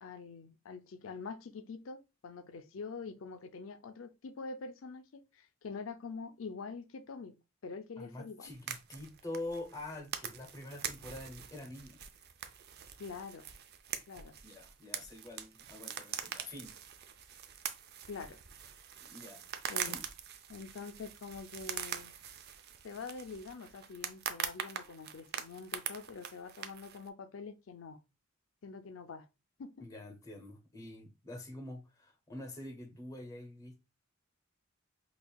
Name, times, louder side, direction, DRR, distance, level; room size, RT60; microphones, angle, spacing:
voice 1, 0.0-7.3 7.6-8.5 13.0-13.5 14.1-14.3 18.1-18.4 19.7-20.0 20.5-22.1 22.8-28.0 28.6-29.3 29.6-29.9, left 4 dB, 75° left, 0.5 m, -45 dB
voice 2, 8.0-12.0 14.4-16.7 19.0-19.5 19.9-20.0 29.8-33.9, left 1 dB, 15° left, 0.7 m, -46 dB
sound 1, 8.4-27.1, right 8 dB, 55° right, 0.4 m, -43 dB
5.4 x 2.4 x 2.3 m
head